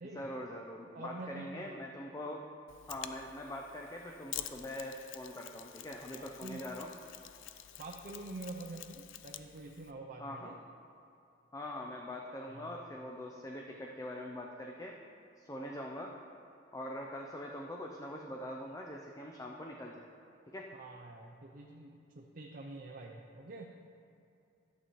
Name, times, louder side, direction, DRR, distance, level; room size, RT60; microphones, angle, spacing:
voice 1, 0.0-2.4 2.9-6.9 10.2-10.5 11.5-15.0 15.4-16.2 16.7-20.1 20.5-20.7, left 1 dB, 20° left, 0 dB, 0.5 m, -43 dB
voice 2, 0.9-1.9 6.1-6.7 7.8-10.5 12.5-12.8 20.8-23.7, right 2 dB, 50° right, 1 dB, 0.6 m, -47 dB
Mechanisms, 2.7-9.9, left 12 dB, 90° left, 0.4 m, -48 dB
11.5 x 8.1 x 3.1 m, 2.7 s
head